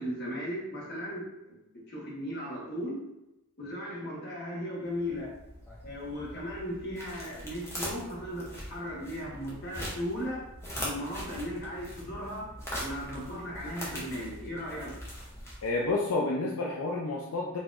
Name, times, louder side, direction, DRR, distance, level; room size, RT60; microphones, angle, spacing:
voice 1, 0.0-3.1 3.6-5.3 5.8-10.5 10.8-12.5 12.8-14.9, equal, 45° left, -4 dB, 1.0 m, -37 dB
sound 1, 4.9-16.0, equal, 10° left, 0.7 m, -42 dB
voice 2, 15.6-17.6, left 2 dB, 70° left, -2 dB, 0.5 m, -30 dB
4.0 x 2.8 x 2.4 m, 0.92 s
head